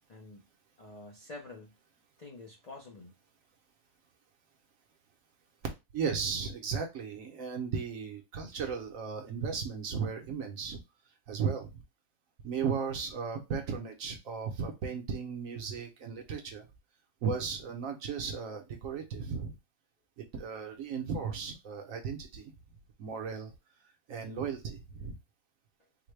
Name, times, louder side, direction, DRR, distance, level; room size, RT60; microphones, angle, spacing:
voice 1, 0.1-0.5 0.8-1.8 2.2-3.1, left 2 dB, 55° left, 0.4 m, -48 dB
voice 2, 5.9-10.8 11.3-11.8 12.4-16.7 17.2-19.6 20.2-22.4 23.0-23.5 24.1-25.1, right 6 dB, 65° right, 1.0 m, -35 dB
4.0 x 2.2 x 3.1 m
omnidirectional pair, 1.7 m